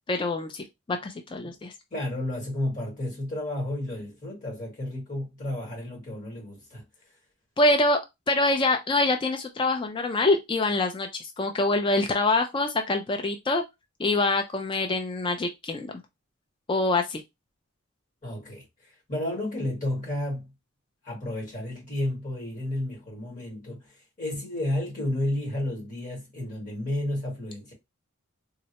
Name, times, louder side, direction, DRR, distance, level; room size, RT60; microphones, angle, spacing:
voice 1, 0.1-1.7 7.6-8.0 8.3-13.6 14.0-15.9 16.7-17.2, left 2 dB, 25° left, 0.4 m, -25 dB
voice 2, 1.9-6.8 18.2-18.6 19.1-20.5 21.0-27.7, left 1 dB, 40° left, 1.6 m, -32 dB
3.7 x 2.1 x 2.8 m
head